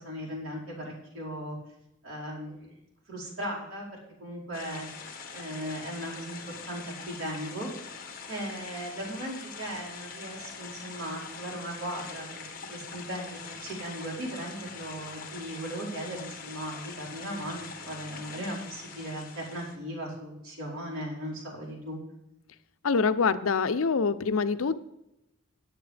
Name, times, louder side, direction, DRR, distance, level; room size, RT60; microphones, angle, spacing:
voice 1, 0.0-1.6 2.0-2.7 3.1-4.9 5.3-7.7 8.3-12.4 12.7-22.0, right 1 dB, 85° right, -4 dB, 4.9 m, -37 dB
sound 1, 4.5-19.8, left 5 dB, 40° left, 1.6 m, -43 dB
voice 2, 22.8-24.8, left 5 dB, 85° left, 13 dB, 0.6 m, -25 dB
17.5 x 8.8 x 3.4 m, 0.89 s
head